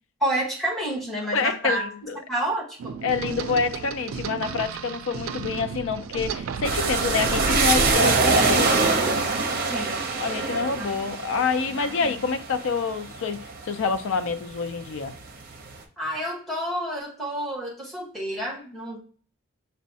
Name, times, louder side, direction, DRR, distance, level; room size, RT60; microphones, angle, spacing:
voice 1, 0.2-1.8 2.3-3.0 9.6-10.0 10.8-10.9 11.8-12.2 16.0-19.0, right 1 dB, ahead, 1.2 m, -29 dB
voice 2, 1.3-2.2 3.0-8.7 10.2-15.1, left 5 dB, 75° left, 0.4 m, -27 dB
sound 1, 2.8-8.0, right 4 dB, 90° right, 0.3 m, -32 dB
sound 2, 6.6-14.3 14.8-15.6, right 3 dB, 45° right, 0.6 m, -24 dB
6.1 x 2.1 x 2.7 m
head